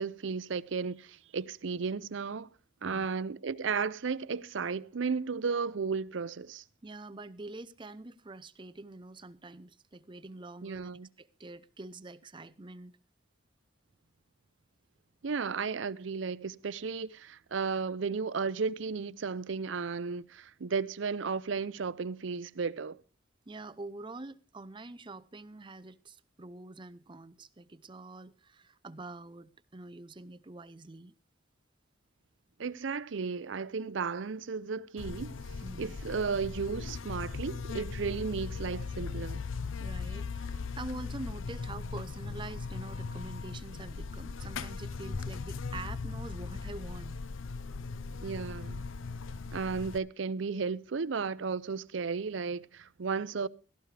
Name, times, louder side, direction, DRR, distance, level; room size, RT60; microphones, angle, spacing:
voice 1, 0.0-2.5 2.8-6.6 10.6-11.1 15.2-23.0 32.6-35.3 35.8-39.4 48.2-48.8 49.5-53.5, right 5 dB, 70° right, 0.6 m, -34 dB
voice 2, 6.8-13.0 23.5-31.1 35.6-36.0 39.8-47.2, right 2 dB, 25° right, 0.7 m, -45 dB
Buzz, 35.0-50.0, left 4 dB, 85° left, 0.6 m, -39 dB
16.5 x 14.5 x 3.3 m
head